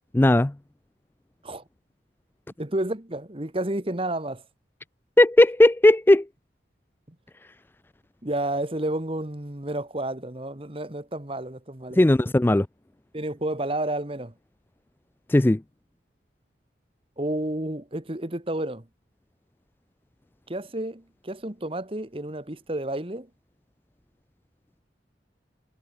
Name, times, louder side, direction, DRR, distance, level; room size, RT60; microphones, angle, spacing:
voice 1, 0.1-0.5 5.2-6.3 12.0-12.7 15.3-15.6, left 1 dB, 10° left, 0.3 m, -17 dB
voice 2, 2.6-4.4 8.2-12.0 13.1-14.3 17.2-18.9 20.5-23.3, right 1 dB, 30° right, 1.6 m, -30 dB
head